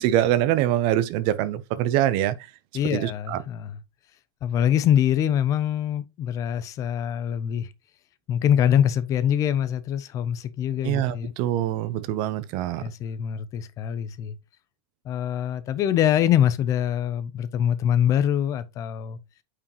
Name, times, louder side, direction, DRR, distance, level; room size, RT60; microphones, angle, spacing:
voice 1, 0.0-2.3 2.9-3.4 10.8-12.8, right 12 dB, 35° right, 0.6 m, -24 dB
voice 2, 2.7-3.8 4.4-7.7 8.3-11.3 12.8-14.3 15.1-19.2, left 10 dB, 25° left, 0.5 m, -24 dB
8.7 x 4.8 x 3.0 m
supercardioid pair, 165°, 14 cm